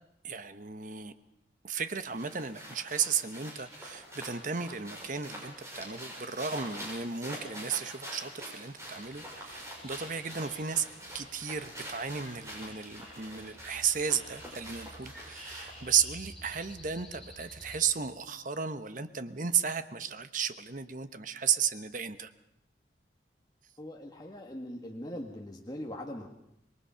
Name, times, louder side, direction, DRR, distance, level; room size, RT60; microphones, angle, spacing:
voice 1, 0.2-1.1 1.6-10.9 11.1-22.3, right 7 dB, 45° right, 11 dB, 1.1 m, -34 dB
sound 1, 1.8-15.9, equal, 15° right, 6.9 m, -45 dB
sound 2, 8.8-17.8, equal, 5° left, 5.8 m, -52 dB
voice 2, 23.8-26.3, left 1 dB, 20° left, 0 dB, 1.6 m, -41 dB
26.5 x 21.0 x 5.8 m, 0.77 s
head